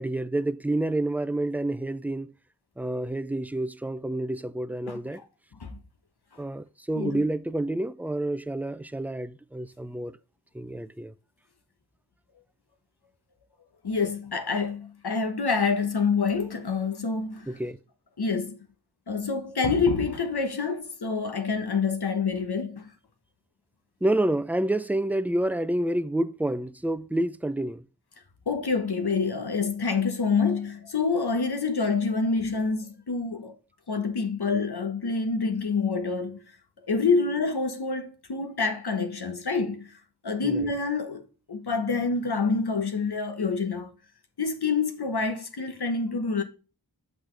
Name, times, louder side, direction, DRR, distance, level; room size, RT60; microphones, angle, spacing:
voice 1, 0.0-2.3 2.8-5.2 6.4-10.2 10.5-11.1 17.5-17.8 24.0-27.8 40.4-40.7, right 1 dB, 5° right, 0.3 m, -28 dB
voice 2, 13.8-17.5 18.2-18.7 19.1-22.9 28.5-33.5 33.9-36.5 36.9-43.9 44.4-46.4, left 4 dB, 75° left, 1.2 m, -27 dB
6.4 x 5.9 x 3.2 m
wide cardioid pair, 70°, 39 cm